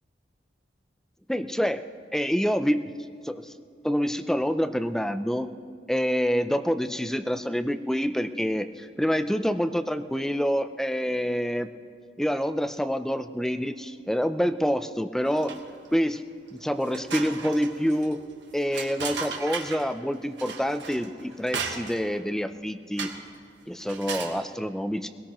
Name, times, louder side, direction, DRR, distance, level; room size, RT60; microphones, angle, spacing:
voice 1, 1.3-1.8 2.1-2.8 3.2-3.5 3.8-5.5 5.9-11.7 12.2-15.5 15.9-16.2 16.5-18.2 18.5-23.1 23.7-25.1, equal, 5° left, 9 dB, 0.4 m, -27 dB
sound 1, 15.2-15.9 16.3-16.4 16.8-19.9 20.4-22.2 23.0-23.3 23.8-24.4, right 5 dB, 85° right, 1.3 m, -36 dB
20.5 x 17.5 x 3.0 m, 2.4 s
head